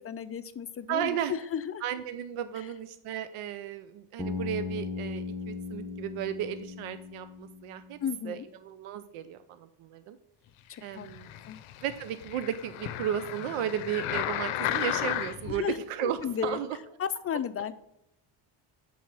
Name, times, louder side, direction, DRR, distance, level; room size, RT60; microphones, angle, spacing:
voice 1, 0.0-1.8 8.0-8.5 10.7-11.1 11.5-11.6 15.5-16.6 17.0-17.7, left 8 dB, 30° left, 13 dB, 0.4 m, -34 dB
voice 2, 0.9-1.3 1.8-8.0 8.2-10.2 10.8-11.3 11.8-16.8, right 10 dB, 85° right, 11 dB, 0.6 m, -34 dB
Bass guitar, 4.2-8.2, left 4 dB, 5° left, 1.2 m, -38 dB
sound 1, 11.0-15.6 16.2-16.3, left 12 dB, 75° left, 0.6 m, -34 dB
5.5 x 4.6 x 5.8 m, 0.84 s
cardioid pair, 100°, 50 cm